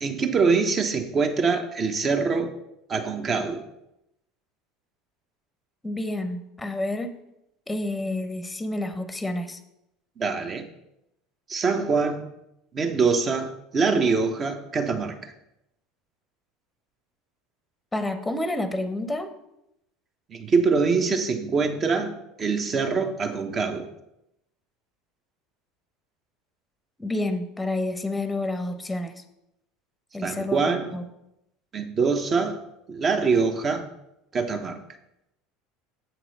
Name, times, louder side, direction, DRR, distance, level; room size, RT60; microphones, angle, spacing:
voice 1, 0.0-2.5 2.9-3.6 10.2-10.7 11.5-12.3 12.7-15.2 20.3-23.9 30.2-31.0 31.7-32.6 32.9-33.9 34.3-34.8, right 4 dB, 35° right, 7 dB, 1.0 m, -24 dB
voice 2, 5.8-7.1 7.7-9.6 17.9-19.3 27.0-29.2 30.1-31.0, left 1 dB, 10° left, 9 dB, 0.8 m, -29 dB
7.9 x 6.0 x 4.0 m, 0.85 s
figure-of-eight pair, 70°, 0 cm